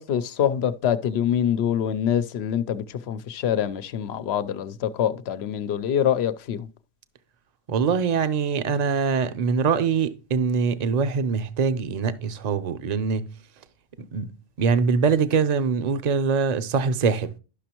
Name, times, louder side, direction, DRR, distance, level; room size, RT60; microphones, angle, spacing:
voice 1, 0.0-6.7, left 9 dB, 85° left, 0.9 m, -25 dB
voice 2, 7.7-13.3 14.1-14.3 14.6-17.3, right 5 dB, 45° right, 0.7 m, -23 dB
12.0 x 6.1 x 2.9 m
omnidirectional pair, 1.1 m